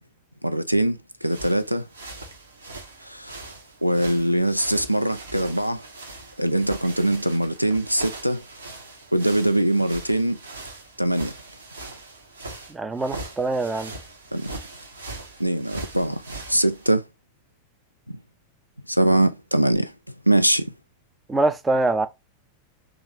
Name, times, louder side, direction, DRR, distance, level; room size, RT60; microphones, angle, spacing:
voice 1, 0.4-1.9 3.0-3.4 3.8-5.8 6.4-8.4 9.1-10.4 11.0-11.3 14.3-14.5 15.4-17.0 18.1-18.2 18.9-20.7, right 1 dB, 90° right, 0.3 m, -22 dB
sound 1, 1.2-16.9, right 2 dB, 75° right, 0.8 m, -40 dB
voice 2, 12.7-13.9 21.3-22.1, right 2 dB, 10° right, 0.4 m, -23 dB
3.2 x 2.4 x 3.1 m
figure-of-eight pair, 90°, 0 cm